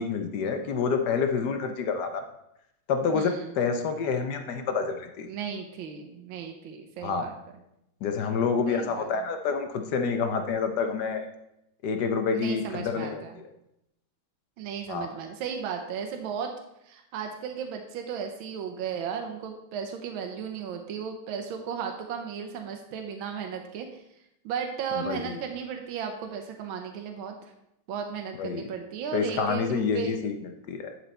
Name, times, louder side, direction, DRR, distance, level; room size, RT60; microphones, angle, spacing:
voice 1, 0.0-2.2 2.9-5.3 7.0-7.3 8.0-11.3 11.8-13.4 14.9-15.1 25.0-25.4 28.3-28.6 29.1-30.3 30.7-30.9, left 5 dB, 65° left, 6 dB, 1.1 m, -28 dB
voice 2, 3.1-3.5 5.3-7.3 8.7-9.1 12.3-13.3 14.6-16.5 16.8-24.0 24.4-27.3 27.9-30.1, right 7 dB, 85° right, 4 dB, 1.6 m, -35 dB
11.0 x 4.6 x 4.1 m, 0.83 s
omnidirectional pair, 2.2 m